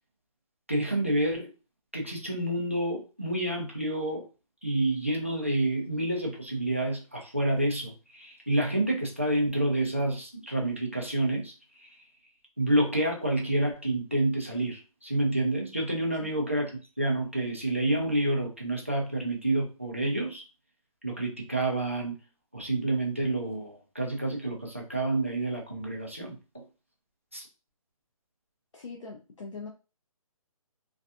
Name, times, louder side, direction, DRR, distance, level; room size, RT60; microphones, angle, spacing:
voice 1, 0.7-1.5 1.9-4.2 4.6-11.5 11.8-11.9 12.6-20.4 21.0-22.2 22.5-26.6 27.3-27.5, right 1 dB, 20° right, 0 dB, 0.3 m, -28 dB
voice 2, 28.7-29.7, left 4 dB, 55° left, 0 dB, 0.5 m, -41 dB
2.5 x 2.4 x 2.4 m, 0.31 s
hypercardioid pair, 180°, 19 cm